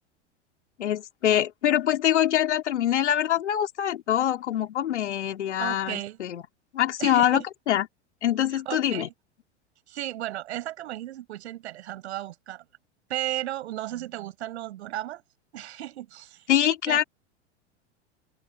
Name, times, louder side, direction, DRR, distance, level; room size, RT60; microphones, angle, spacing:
voice 1, 0.8-6.4 6.7-7.9 8.2-9.1 16.5-17.0, left 11 dB, 75° left, 2.8 m, -24 dB
voice 2, 5.6-6.2 7.0-7.4 8.5-9.1 9.9-12.6 13.1-15.2 15.5-16.5 16.8-17.1, right 14 dB, 70° right, 6.7 m, -34 dB
open air
hypercardioid pair, 95°, 35 cm